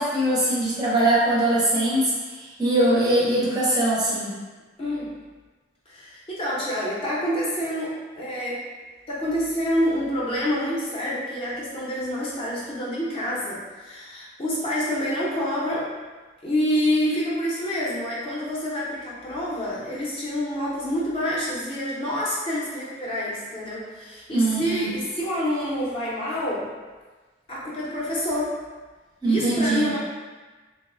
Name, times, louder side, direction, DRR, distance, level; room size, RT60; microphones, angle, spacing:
voice 1, 0.0-4.3 24.3-24.9 29.2-29.9, right 1 dB, 20° right, -7 dB, 0.5 m, -22 dB
voice 2, 4.8-5.1 5.9-8.6 9.1-15.9 16.4-26.7 27.5-28.6 29.2-30.0, equal, 30° left, -6 dB, 0.5 m, -27 dB
2.9 x 2.0 x 2.4 m, 1.3 s
head